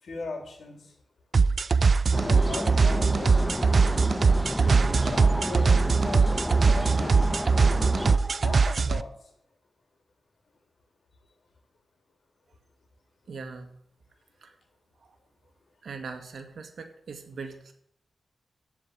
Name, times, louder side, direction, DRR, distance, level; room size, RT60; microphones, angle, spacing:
voice 1, 0.0-0.9 2.2-3.7 5.0-6.3 6.7-7.3 8.4-9.1, left 3 dB, 70° left, 4 dB, 3.1 m, -38 dB
sound 1, 1.3-9.0, right 4 dB, 50° right, 0.4 m, -22 dB
sound 2, 2.1-8.2, equal, ahead, 1.1 m, -31 dB
sound 3, 4.4-8.7, right 1 dB, 25° right, 0.8 m, -40 dB
voice 2, 13.3-13.8 14.4-14.6 15.0-15.2 15.8-17.7, right 4 dB, 70° right, 6 dB, 1.9 m, -41 dB
14.5 x 4.9 x 9.3 m, 0.68 s
wide cardioid pair, 130°, 0 cm